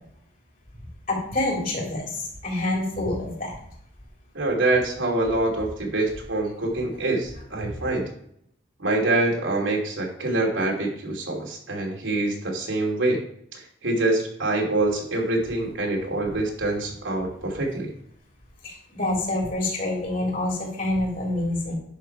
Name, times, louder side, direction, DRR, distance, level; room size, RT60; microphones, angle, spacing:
voice 1, 1.1-3.5 18.6-21.8, left 2 dB, 45° left, -1 dB, 3.4 m, -27 dB
voice 2, 4.3-8.1 8.8-13.2 13.5-17.9, right 2 dB, 80° right, -1 dB, 2.8 m, -25 dB
10.5 x 6.4 x 4.6 m, 0.70 s
head